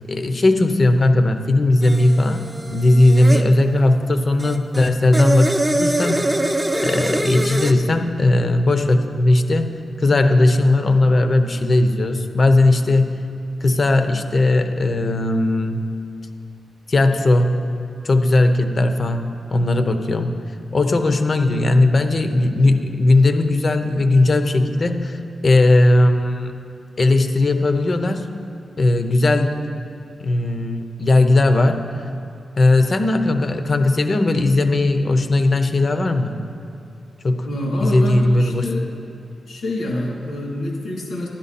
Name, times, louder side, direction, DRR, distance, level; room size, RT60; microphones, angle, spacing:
voice 1, 0.1-6.3 6.8-13.2 13.6-15.9 16.9-17.7 18.0-20.4 20.7-26.5 27.0-28.2 28.8-29.6 30.2-31.8 32.6-36.3 37.2-37.5 37.8-38.8, left 2 dB, 45° left, 7 dB, 0.7 m, -17 dB
sound 1, 1.8-3.5 4.4-7.7, right 1 dB, 15° right, 0.6 m, -23 dB
voice 2, 37.4-38.9 39.5-41.3, left 1 dB, 90° left, -3 dB, 2.6 m, -26 dB
12.0 x 10.5 x 4.2 m, 2.5 s
wide cardioid pair, 100°, 0 cm